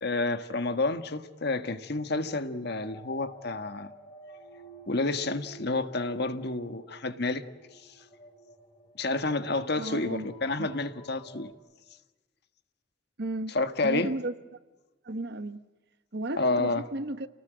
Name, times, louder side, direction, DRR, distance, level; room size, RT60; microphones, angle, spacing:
voice 1, 0.0-3.9 4.9-7.4 7.8-7.9 8.9-11.5 13.5-14.1 16.4-16.8, left 2 dB, 55° left, 1.6 m, -29 dB
sound 1, 2.8-11.5, right 1 dB, 30° left, 5.3 m, -52 dB
voice 2, 9.8-10.3 10.6-10.7 13.2-13.5 13.8-14.3 15.0-15.6 16.1-17.3, right 2 dB, 55° right, 1.3 m, -33 dB
30.0 x 19.0 x 9.2 m
head